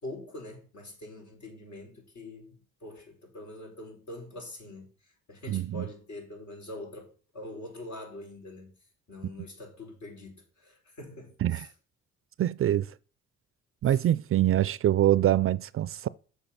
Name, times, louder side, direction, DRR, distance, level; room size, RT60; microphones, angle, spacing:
voice 1, 0.0-8.7 9.1-11.7 13.8-14.0, left 1 dB, 65° left, 5.0 m, -44 dB
voice 2, 5.5-5.8 11.4-11.7 12.4-12.9 13.8-16.1, right 12 dB, 45° right, 0.4 m, -24 dB
7.1 x 6.8 x 5.8 m
cardioid pair, 90°, 30 cm